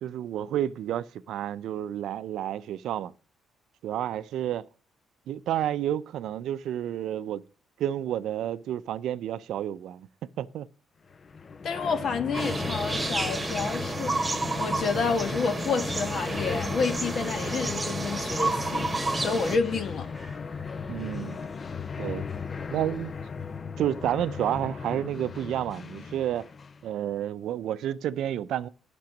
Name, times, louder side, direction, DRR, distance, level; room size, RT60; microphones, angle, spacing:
voice 1, 0.0-3.1 3.8-4.7 5.3-7.4 7.8-10.1 10.4-10.7 20.9-21.4 22.0-22.3 22.7-23.1 23.8-26.5 26.8-28.7, right 11 dB, 80° right, 0.4 m, -30 dB
sound 1, 11.1-26.9, left 5 dB, 40° left, 0.5 m, -37 dB
voice 2, 11.6-14.1 14.6-20.1, left 5 dB, 55° left, 1.5 m, -29 dB
sound 2, 12.3-19.6, right 2 dB, 20° right, 1.8 m, -30 dB
sound 3, 16.1-23.5, left 1 dB, 10° left, 2.6 m, -47 dB
10.5 x 6.1 x 6.0 m
cardioid pair, 90°, 0 cm